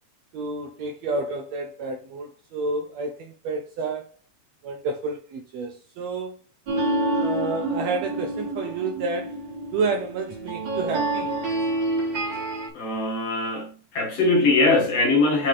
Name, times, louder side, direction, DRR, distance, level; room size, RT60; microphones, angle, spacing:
voice 1, 0.3-4.1 4.6-6.4 7.2-9.4 9.7-11.3, right 3 dB, 75° right, 1.6 m, -30 dB
sound 1, 6.7-12.7, right 1 dB, 40° right, 2.5 m, -28 dB
voice 2, 12.7-15.5, left 3 dB, 55° left, 2.5 m, -21 dB
7.4 x 4.1 x 3.2 m
omnidirectional pair, 3.7 m